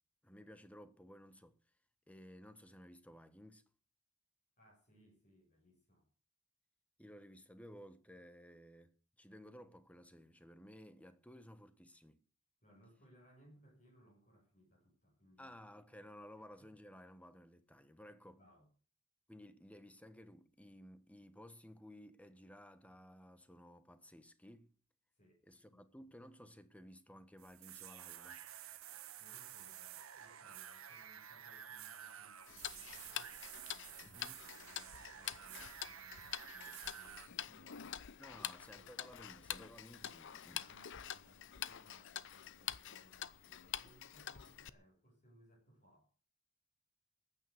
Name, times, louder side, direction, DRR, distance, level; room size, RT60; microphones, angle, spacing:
voice 1, 0.2-1.6 2.1-3.6 7.0-12.2 15.4-18.4 19.3-24.7 25.4-28.4 34.0-34.4 38.2-40.6, equal, 5° left, 1.3 m, -56 dB
voice 2, 4.6-6.1 12.6-15.6 16.4-16.7 18.4-18.7 25.2-26.0 29.2-33.4 33.7-38.0 38.3-38.9 40.0-40.2 40.5-46.1, equal, 40° left, 7.7 m, -67 dB
sound 1, 27.4-37.3, right 9 dB, 75° right, 1.6 m, -52 dB
Tick-tock, 32.5-44.7, left 10 dB, 60° left, 0.7 m, -47 dB
15.0 x 9.7 x 8.0 m
head